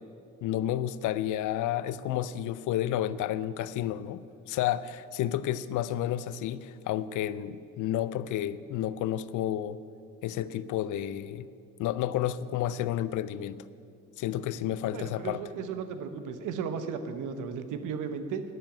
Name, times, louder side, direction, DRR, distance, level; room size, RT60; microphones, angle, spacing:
voice 1, 0.4-9.8 10.2-11.5 11.8-13.6 14.2-15.4, left 12 dB, 85° left, 16 dB, 0.5 m, -31 dB
voice 2, 14.9-18.4, right 6 dB, 85° right, 9 dB, 1.0 m, -35 dB
10.0 x 7.1 x 8.8 m, 2.5 s
cardioid pair, 90°, 30 cm